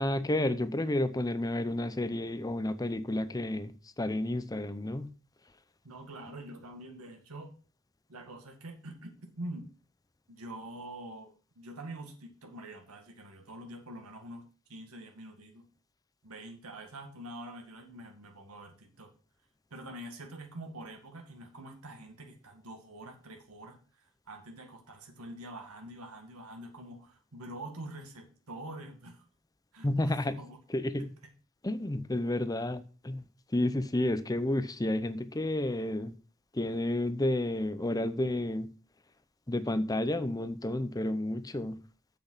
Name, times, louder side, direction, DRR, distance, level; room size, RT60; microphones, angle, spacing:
voice 1, 0.0-5.1 29.8-30.4 30.7-31.1 31.6-33.2 33.5-36.1 36.5-38.7 39.5-41.8, left 1 dB, 15° left, 0.6 m, -31 dB
voice 2, 5.8-7.5 8.1-9.7 10.3-15.7 16.2-19.1 19.7-29.2 29.7-30.6 31.0-31.1, right 1 dB, 90° right, 1.9 m, -45 dB
7.7 x 7.1 x 5.7 m
head